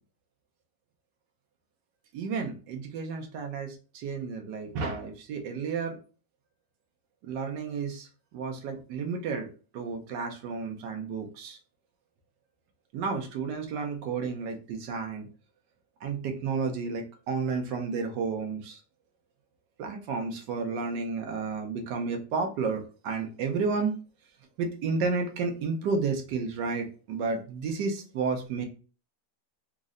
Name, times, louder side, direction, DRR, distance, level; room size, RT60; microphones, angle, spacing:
voice 1, 2.1-6.0 7.2-8.1 8.3-9.5 9.7-11.6 12.9-15.3 16.0-18.8 19.8-23.9 24.6-28.7, right 4 dB, 90° right, 3 dB, 1.3 m, -31 dB
3.7 x 2.1 x 3.6 m, 0.36 s
omnidirectional pair, 1.8 m